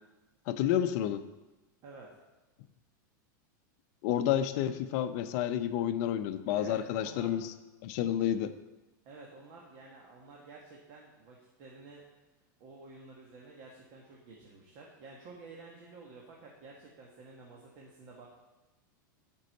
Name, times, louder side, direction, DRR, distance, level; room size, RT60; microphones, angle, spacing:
voice 1, 0.5-1.2 4.0-7.5 7.8-8.5, left 10 dB, 50° left, 11 dB, 0.6 m, -30 dB
voice 2, 1.8-2.2 6.5-7.3 9.0-12.0 12.6-18.3, right 3 dB, 45° right, -2 dB, 1.5 m, -51 dB
8.1 x 5.4 x 6.6 m, 1.1 s
supercardioid pair, 145°, 11 cm